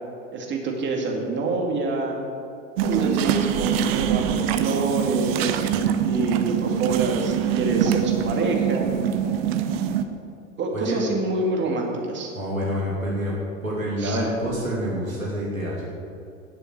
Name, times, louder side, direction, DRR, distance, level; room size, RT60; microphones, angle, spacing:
voice 1, 0.3-2.2 2.8-5.7 6.0-8.9 10.6-12.3 14.0-14.2, right 3 dB, 25° right, 0 dB, 2.5 m, -26 dB
sound 1, 2.8-10.0, right 9 dB, 50° right, 0.9 m, -24 dB
voice 2, 12.3-13.3 13.6-15.8, equal, 90° right, -6 dB, 2.6 m, -27 dB
18.5 x 6.9 x 4.6 m, 2.8 s
figure-of-eight pair, 85°, 40 cm